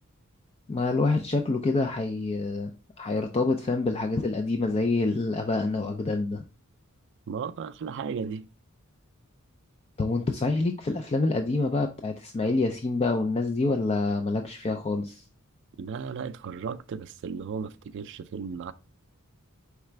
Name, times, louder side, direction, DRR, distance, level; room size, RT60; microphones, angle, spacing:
voice 1, 0.7-6.4 10.0-15.2, left 3 dB, 30° left, 0.4 m, -27 dB
voice 2, 7.3-8.5 15.8-18.7, right 6 dB, 55° right, 0.3 m, -35 dB
4.8 x 3.4 x 3.2 m
head